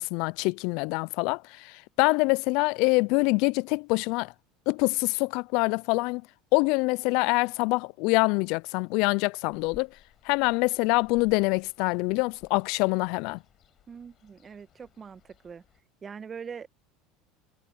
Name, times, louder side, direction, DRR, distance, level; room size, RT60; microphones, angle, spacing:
voice 1, 0.0-4.3 4.7-6.2 6.5-9.9 10.2-13.4, left 28 dB, 70° left, 0.3 m, -25 dB
Ocean, 9.5-15.8, left 11 dB, 45° left, 7.9 m, -58 dB
voice 2, 13.9-15.6 16.0-16.7, right 6 dB, 30° right, 1.3 m, -42 dB
hypercardioid pair, 90°, 0 cm